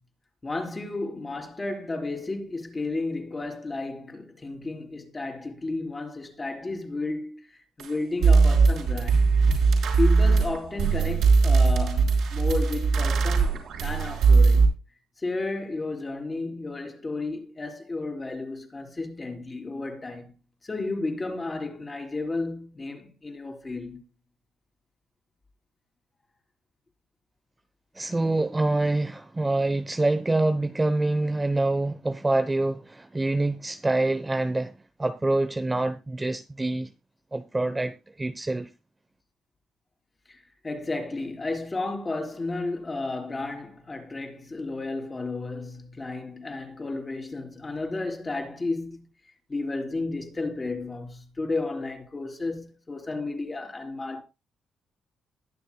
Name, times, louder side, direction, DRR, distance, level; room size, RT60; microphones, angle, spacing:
voice 1, 0.4-9.2 10.0-14.7 15.2-20.3 20.6-24.0 40.3-49.1 49.5-54.2, left 3 dB, 25° left, 3.6 m, -33 dB
sound 1, 7.8-7.9 8.2-14.7, right 4 dB, 75° right, 5.2 m, -20 dB
voice 2, 27.9-34.7 35.0-36.9 37.3-38.7, right 2 dB, 15° right, 0.8 m, -26 dB
21.5 x 7.2 x 2.3 m
cardioid pair, 90°, 0 cm